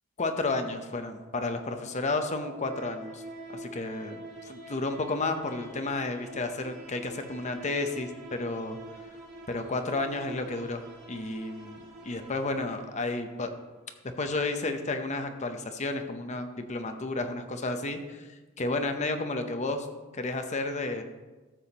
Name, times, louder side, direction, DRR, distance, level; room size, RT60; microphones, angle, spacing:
voice 1, 0.2-3.2 3.5-8.8 9.5-10.8 11.1-13.5 14.2-18.3 18.6-19.9 20.1-21.0, left 2 dB, 35° left, 6 dB, 0.7 m, -32 dB
sound 1, 0.8-13.6, right 1 dB, 35° right, 1.4 m, -46 dB
13.5 x 7.0 x 2.9 m, 1.2 s
head